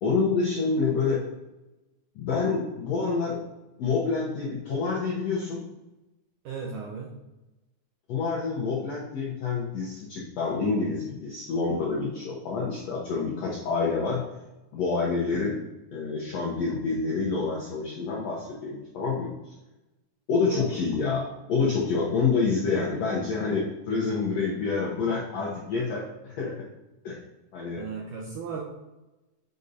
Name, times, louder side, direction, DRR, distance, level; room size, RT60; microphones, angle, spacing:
voice 1, 0.0-1.2 2.1-3.4 3.8-5.6 8.1-14.2 14.7-15.6 15.9-19.5 20.3-26.5 27.0-27.2 27.5-27.8, left 4 dB, 75° left, -5 dB, 1.5 m, -27 dB
voice 2, 6.4-7.1 20.4-20.8 27.8-28.6, right 5 dB, 80° right, -2 dB, 1.8 m, -36 dB
8.2 x 5.3 x 2.6 m, 1.0 s
omnidirectional pair, 4.4 m